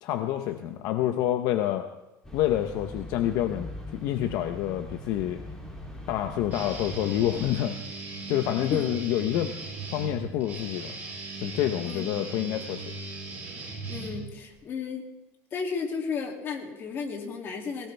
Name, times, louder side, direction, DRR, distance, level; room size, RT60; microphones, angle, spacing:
voice 1, 0.0-1.9 2.3-3.7 3.9-5.4 6.1-7.8 8.3-9.5 9.9-10.9 11.4-12.8, left 12 dB, 60° left, 7 dB, 0.8 m, -28 dB
sound 1, 2.2-7.5, left 1 dB, 10° left, 2.8 m, -41 dB
Guitar, 6.5-14.5, right 3 dB, 25° right, 7.0 m, -38 dB
voice 2, 8.6-8.9 11.8-12.2 13.9-15.0 15.5-17.9, left 5 dB, 35° left, 1 dB, 2.5 m, -33 dB
20.5 x 18.0 x 3.4 m, 1.0 s
cardioid pair, 160°, 7 cm